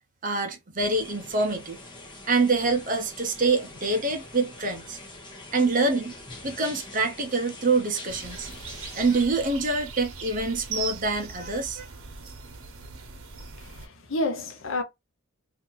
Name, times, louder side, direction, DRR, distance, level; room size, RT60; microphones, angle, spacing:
voice 1, 0.2-1.8 2.3-5.0 5.5-6.1 6.4-8.6 8.9-11.9, right 3 dB, 35° right, 0.8 m, -25 dB
sound 1, 0.8-9.2, left 2 dB, 20° left, 0.9 m, -44 dB
sound 2, 8.1-13.9, right 5 dB, 75° right, 1.0 m, -39 dB
voice 2, 13.6-14.8, left 2 dB, 65° left, 0.8 m, -30 dB
2.7 x 2.7 x 3.9 m
head